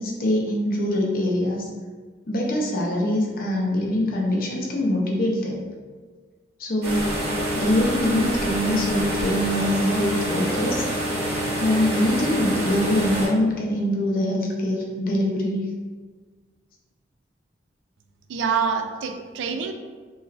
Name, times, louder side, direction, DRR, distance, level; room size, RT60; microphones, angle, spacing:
voice 1, 0.0-1.7 2.3-5.6 6.6-7.1 7.5-10.8 11.6-15.7, left 1 dB, 50° left, -1 dB, 0.5 m, -23 dB
sound 1, 6.8-13.3, right 1 dB, 55° right, 0.8 m, -26 dB
voice 2, 18.3-19.7, right 6 dB, 80° right, 5 dB, 0.3 m, -26 dB
2.4 x 2.3 x 3.1 m, 1.5 s
head